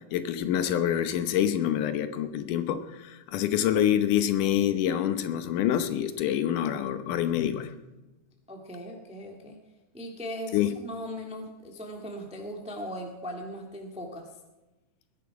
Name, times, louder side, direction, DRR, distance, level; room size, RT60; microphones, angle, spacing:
voice 1, 0.1-7.8 10.5-10.8, left 10 dB, 80° left, 10 dB, 2.5 m, -26 dB
voice 2, 8.5-9.6 9.9-14.3, equal, 5° right, 1 dB, 1.3 m, -39 dB
20.0 x 11.0 x 4.8 m, 1.1 s
omnidirectional pair, 3.6 m